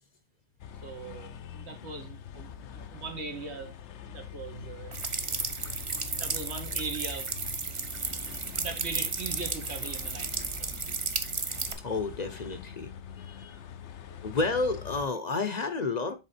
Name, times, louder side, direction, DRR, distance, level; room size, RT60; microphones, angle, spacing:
sound 1, 0.6-15.1, left 8 dB, 85° left, 0.9 m, -44 dB
voice 1, 0.8-3.7 4.1-5.0 6.2-7.3 8.6-11.2, right 4 dB, 80° right, 1.7 m, -40 dB
sound 2, 4.9-11.7, right 4 dB, 35° right, 0.6 m, -33 dB
voice 2, 11.8-13.6 14.2-16.1, left 3 dB, 45° left, 0.7 m, -31 dB
7.5 x 3.7 x 4.2 m
omnidirectional pair, 1.1 m